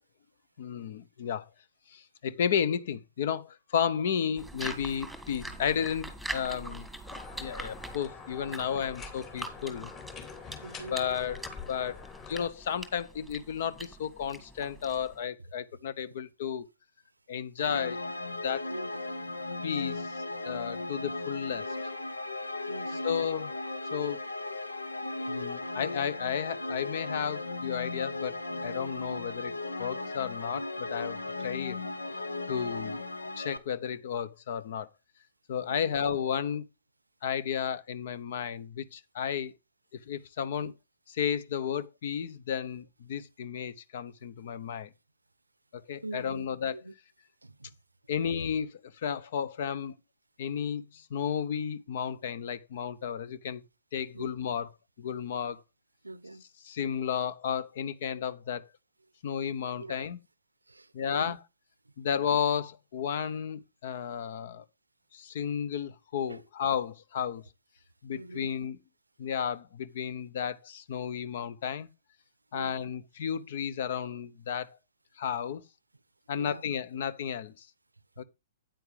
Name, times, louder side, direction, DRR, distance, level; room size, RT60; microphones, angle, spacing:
voice 1, 0.6-1.4 1.9-6.9 7.4-9.9 10.9-11.4 11.7-16.7 17.3-18.0 18.4-18.7 19.6-21.7 23.0-23.6 23.9-24.3 25.3-28.4 28.6-29.5 29.8-31.8 32.5-33.0 33.4-34.9 35.5-36.6 37.2-39.5 40.1-40.7 41.1-44.9 45.7-46.8 48.1-49.9 50.4-53.6 53.9-54.7 55.0-55.6 56.6-58.7 59.2-60.2 60.9-61.4 62.0-64.6 65.1-67.4 68.0-68.8 69.2-71.9 72.5-74.8 75.2-75.6 76.3-77.7 78.2-78.3, left 8 dB, 55° left, 0.8 m, -33 dB
sound 1, 4.4-15.2, right 1 dB, ahead, 1.6 m, -43 dB
sound 2, 7.1-12.5, left 5 dB, 30° left, 3.0 m, -45 dB
voice 2, 8.5-8.8 10.6-11.0 18.7-18.9 22.7-23.1 35.7-36.1 40.5-40.7 46.0-46.9 47.4-47.8 54.1-54.3 56.0-56.4 59.8-60.1 60.7-61.4 66.3-66.4 68.1-68.5 72.5-72.8 76.3-76.6, right 2 dB, 85° right, 0.6 m, -43 dB
sound 3, 17.6-33.6, left 2 dB, 85° left, 1.1 m, -36 dB
9.2 x 9.2 x 3.3 m
figure-of-eight pair, 115°, 0 cm